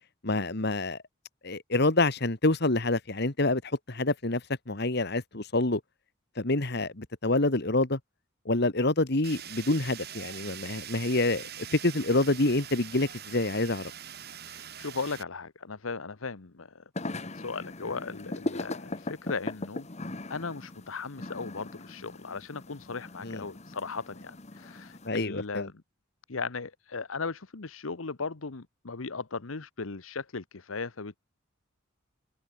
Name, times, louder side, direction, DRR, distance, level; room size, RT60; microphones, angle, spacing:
voice 1, 0.2-1.0 1.4-4.4 4.7-5.8 6.4-8.0 8.5-13.8 23.2-23.4 25.1-25.7, left 2 dB, 55° left, 1.9 m, -27 dB
Fire, 9.2-15.2, right 10 dB, 50° right, 3.2 m, -43 dB
voice 2, 14.5-16.8 17.3-19.9 20.3-25.7 26.3-31.2, left 4 dB, 85° left, 1.1 m, -37 dB
sound 1, 17.0-25.1, left 2 dB, 35° left, 1.3 m, -39 dB
head